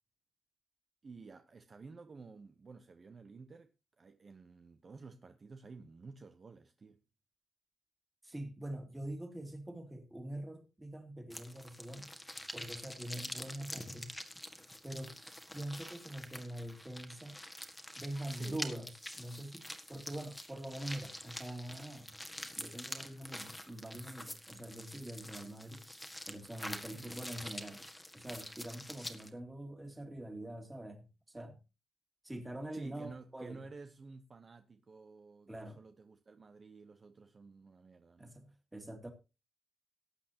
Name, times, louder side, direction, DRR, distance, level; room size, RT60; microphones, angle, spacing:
voice 1, 1.0-3.7 4.0-7.0 18.3-18.6 26.9-27.2 32.7-38.3, right 4 dB, 35° right, 0.9 m, -52 dB
voice 2, 8.2-12.1 12.5-14.1 14.8-15.1 15.5-17.4 18.0-18.9 19.2-22.1 22.6-25.8 26.3-27.8 28.1-31.6 32.2-33.6 35.5-35.8 38.2-39.1, right 1 dB, 10° right, 2.6 m, -44 dB
sound 1, 11.3-29.3, left 1 dB, 5° left, 1.6 m, -46 dB
18.5 x 8.7 x 2.9 m
wide cardioid pair, 130°, 0 cm